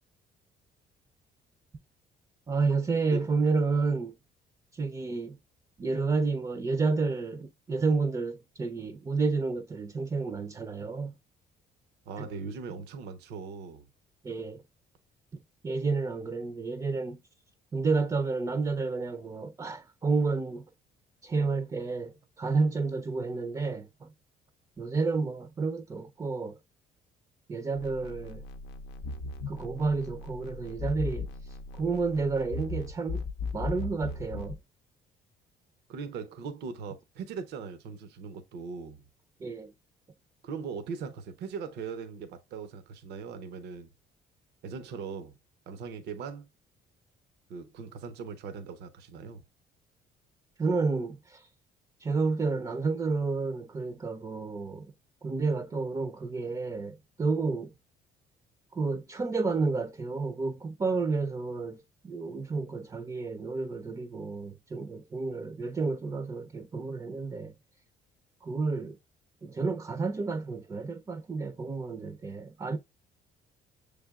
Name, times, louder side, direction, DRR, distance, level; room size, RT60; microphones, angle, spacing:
voice 1, 2.5-4.2 4.7-5.4 5.8-11.2 12.2-12.3 14.2-14.6 15.6-17.2 17.7-20.6 21.2-24.1 24.8-26.6 27.5-28.4 29.5-33.2 33.5-34.6 39.4-39.7 50.6-51.5 52.0-54.9 55.2-57.7 58.7-67.5 68.4-69.0 69.4-72.8, right 4 dB, 20° right, 0.4 m, -30 dB
voice 2, 12.1-13.9 35.9-39.0 40.4-43.9 44.6-45.4 45.7-46.5 47.5-49.4, right 5 dB, 80° right, 0.7 m, -40 dB
sound 1, 27.8-34.6, left 3 dB, 90° left, 0.5 m, -38 dB
6.5 x 3.4 x 2.3 m
cardioid pair, 110°, 17 cm